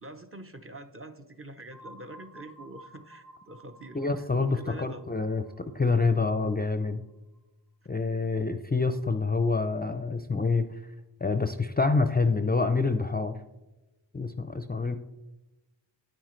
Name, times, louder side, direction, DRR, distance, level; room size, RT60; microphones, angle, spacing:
voice 1, 0.0-5.0, right 1 dB, 30° right, 7 dB, 0.7 m, -45 dB
sound 1, 1.7-7.4, right 1 dB, 50° right, 3.3 m, -53 dB
voice 2, 3.9-7.0 7.9-10.7 11.2-13.4 14.1-15.0, left 4 dB, 20° left, 9 dB, 0.5 m, -27 dB
9.3 x 8.9 x 3.2 m, 1.0 s
cardioid pair, 45°, 45 cm